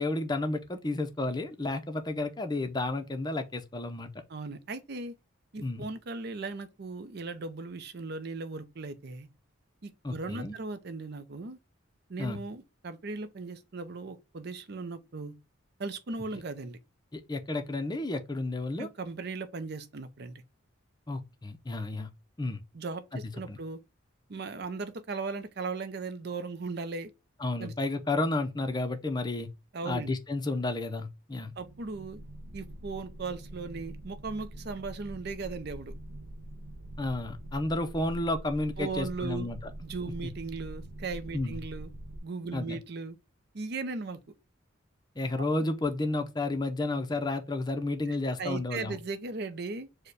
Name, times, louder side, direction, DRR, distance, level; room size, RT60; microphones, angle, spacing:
voice 1, 0.0-4.1 5.6-5.9 10.0-10.5 12.2-12.4 17.1-18.9 21.1-22.1 22.4-22.6 23.1-23.2 23.5-23.6 27.4-29.5 29.8-31.5 37.0-39.6 41.3-41.6 42.5-42.8 45.2-49.0, left 2 dB, 20° left, 0.6 m, -31 dB
voice 2, 4.3-5.2 5.5-9.3 9.8-11.6 12.1-15.3 15.8-16.8 18.8-20.4 22.7-23.8 24.3-27.1 27.6-27.7 29.7-30.1 31.6-32.2 32.5-35.9 38.8-39.5 39.8-41.9 42.2-43.2 43.5-44.2 45.4-45.5 48.1-49.9, right 4 dB, 50° right, 0.6 m, -37 dB
sound 1, 31.5-42.2, right 1 dB, 90° right, 0.8 m, -44 dB
4.6 x 2.2 x 4.7 m
head